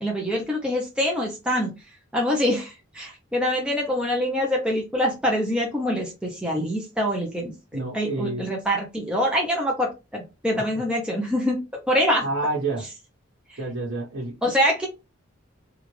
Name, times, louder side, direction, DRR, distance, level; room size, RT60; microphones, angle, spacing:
voice 1, 0.0-1.7 2.1-7.5 7.9-11.6 11.9-12.2 13.5-13.6 14.4-14.9, equal, 5° right, 0.6 m, -25 dB
voice 2, 7.7-8.5 10.5-10.8 12.2-12.9 13.6-14.4, right 2 dB, 65° right, 1.3 m, -29 dB
3.5 x 2.4 x 3.2 m
head